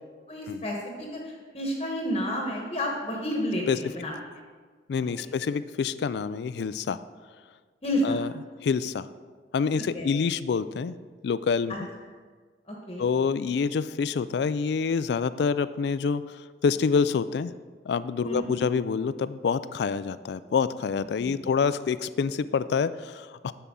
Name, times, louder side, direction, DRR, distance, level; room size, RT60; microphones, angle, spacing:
voice 1, 0.3-4.1 5.0-5.3 7.8-8.2 9.9-10.1 11.7-11.8 12.7-13.1 18.2-18.5 21.2-21.3, equal, 30° left, -1 dB, 1.1 m, -31 dB
voice 2, 4.9-7.0 8.0-8.3 8.6-9.1 9.5-10.9 11.2-11.9 13.0-17.5 17.9-23.5, left 5 dB, 70° left, 15 dB, 0.3 m, -27 dB
10.0 x 6.9 x 3.7 m, 1.5 s
head